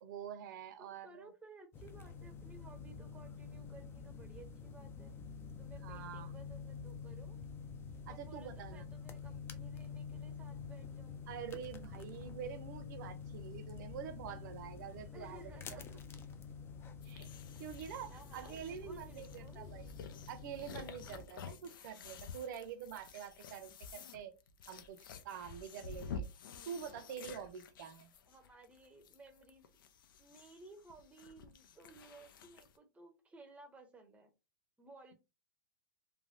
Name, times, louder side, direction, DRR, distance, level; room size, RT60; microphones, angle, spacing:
voice 1, 0.0-1.3 5.8-6.4 8.1-8.9 11.3-15.8 17.1-17.3 17.6-19.9 20.3-24.3 24.7-26.3 26.7-28.1, right 8 dB, 60° right, 0.7 m, -46 dB
voice 2, 0.8-5.1 5.6-7.4 8.1-11.4 15.1-16.0 18.1-19.9 28.3-29.6 30.2-34.3 34.8-35.1, right 2 dB, 10° right, 0.7 m, -58 dB
sound 1, 1.7-21.3, left 5 dB, 20° left, 0.4 m, -48 dB
sound 2, 17.0-32.8, left 5 dB, 75° left, 0.5 m, -51 dB
3.2 x 2.2 x 2.6 m
hypercardioid pair, 125°, 11 cm